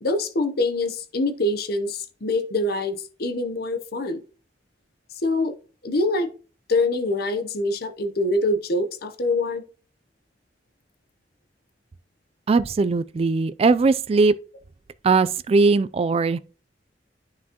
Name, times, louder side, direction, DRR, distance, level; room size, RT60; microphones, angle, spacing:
voice 1, 0.0-4.2 5.2-5.6 5.8-6.3 6.7-9.6, left 2 dB, 60° left, 0.7 m, -24 dB
voice 2, 12.5-14.3 15.0-16.4, right 4 dB, 35° right, 0.3 m, -19 dB
9.7 x 5.8 x 2.9 m
head